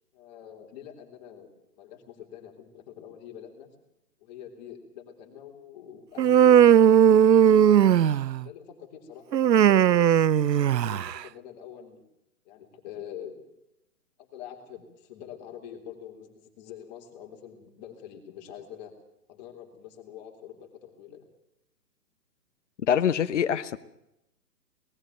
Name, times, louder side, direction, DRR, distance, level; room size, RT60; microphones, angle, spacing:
voice 1, 0.1-3.7 4.2-6.8 7.5-8.1 8.4-10.3 10.7-12.0 12.4-13.4 14.2-18.9 19.3-21.3, left 9 dB, 25° left, 2 dB, 3.4 m, -45 dB
Human voice, 6.2-8.4 9.3-11.2, right 9 dB, 80° right, 0.7 m, -18 dB
voice 2, 22.8-23.8, left 8 dB, 45° left, 11 dB, 1.2 m, -24 dB
19.5 x 14.5 x 9.3 m, 0.85 s
hypercardioid pair, 155°, 49 cm